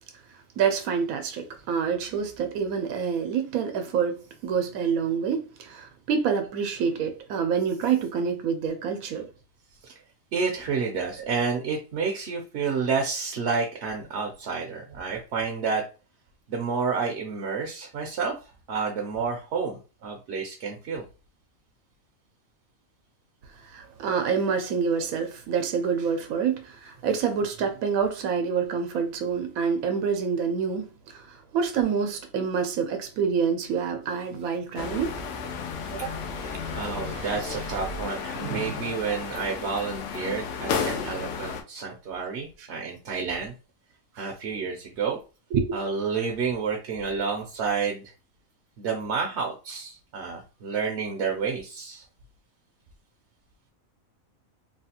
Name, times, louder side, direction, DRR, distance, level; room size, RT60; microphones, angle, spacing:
voice 1, 0.6-9.3 23.6-35.2 35.9-36.1 36.4-36.8 37.1-37.4 38.4-38.7 44.6-44.7 45.5-45.8, right 6 dB, 90° right, 1.0 m, -27 dB
voice 2, 10.3-15.8 16.5-18.3 18.7-21.0 36.7-43.5 44.2-45.2 45.7-48.1 48.8-52.0, right 5 dB, 65° right, 0.8 m, -30 dB
sound 1, 34.8-41.6, left 5 dB, 70° left, 0.8 m, -33 dB
3.2 x 2.3 x 2.8 m
omnidirectional pair, 1.4 m